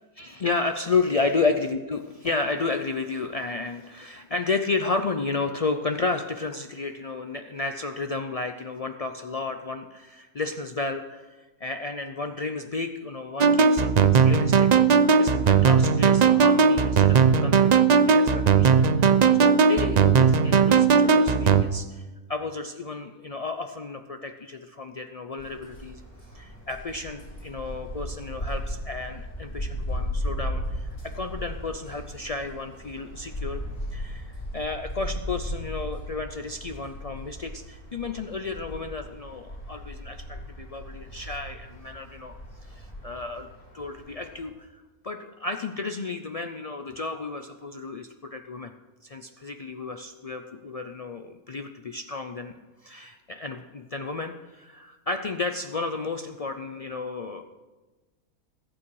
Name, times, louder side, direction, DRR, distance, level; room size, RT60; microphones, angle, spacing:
voice 1, 0.2-14.7 15.0-22.0 22.3-26.0 26.3-33.6 33.9-42.3 42.7-43.5 43.7-48.7 49.0-57.4, left 3 dB, 65° left, 6 dB, 0.3 m, -32 dB
sound 1, 13.4-21.6, right 6 dB, 90° right, 0.3 m, -18 dB
sound 2, 25.4-44.5, equal, 40° left, 2.7 m, -36 dB
21.0 x 8.8 x 4.8 m, 1.2 s
omnidirectional pair, 1.5 m